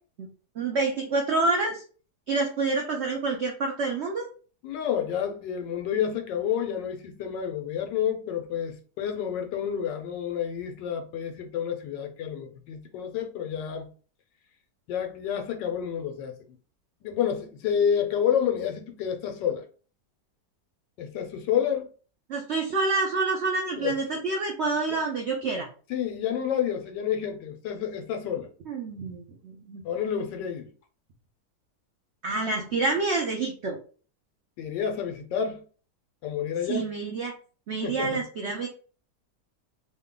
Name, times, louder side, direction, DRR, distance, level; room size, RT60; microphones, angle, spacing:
voice 1, 0.6-1.8 2.3-4.3 22.3-25.7 28.7-29.8 32.2-33.8 36.7-37.3 37.7-38.7, right 3 dB, 85° right, 0.5 m, -27 dB
voice 2, 4.6-13.9 14.9-16.3 17.0-19.6 21.0-21.9 23.8-24.0 25.9-28.5 29.8-30.7 34.6-35.6 36.2-36.9 37.8-38.2, left 8 dB, 85° left, 1.3 m, -29 dB
3.1 x 2.2 x 3.6 m
omnidirectional pair, 1.9 m